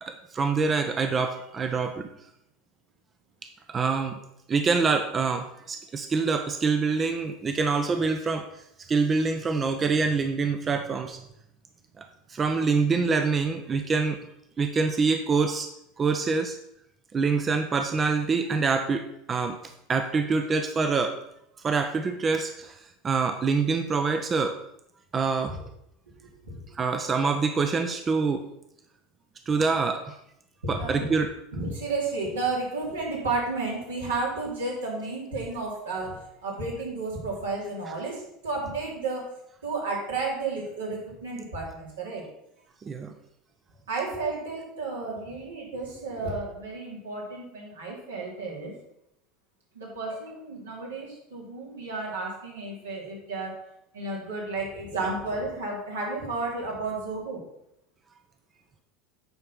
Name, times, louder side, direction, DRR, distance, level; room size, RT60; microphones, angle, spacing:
voice 1, 0.0-2.1 3.7-4.2 4.5-8.5 8.9-11.2 12.0-14.2 14.6-15.7 16.0-16.6 17.1-19.0 19.3-19.6 19.9-21.2 21.6-22.8 23.0-24.6 25.1-25.6 26.7-28.4 29.5-30.2 30.7-31.3 42.8-43.1, right 4 dB, 30° right, 6 dB, 0.8 m, -25 dB
voice 2, 30.6-39.3 39.6-42.2 43.9-48.7 49.7-53.7 53.9-57.4, right 3 dB, 85° right, -4 dB, 3.1 m, -32 dB
9.3 x 4.4 x 5.6 m, 0.78 s
hypercardioid pair, 80°, 0 cm